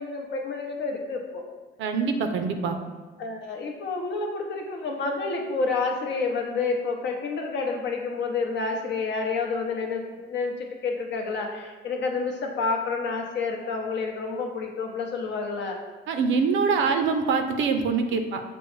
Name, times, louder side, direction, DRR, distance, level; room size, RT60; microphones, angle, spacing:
voice 1, 0.0-1.5 3.2-15.8, left 4 dB, 65° left, 2 dB, 0.7 m, -29 dB
voice 2, 1.8-2.8 16.1-18.4, right 5 dB, 75° right, 6 dB, 0.5 m, -24 dB
6.0 x 2.0 x 3.1 m, 1.3 s
cardioid pair, 90°, 20 cm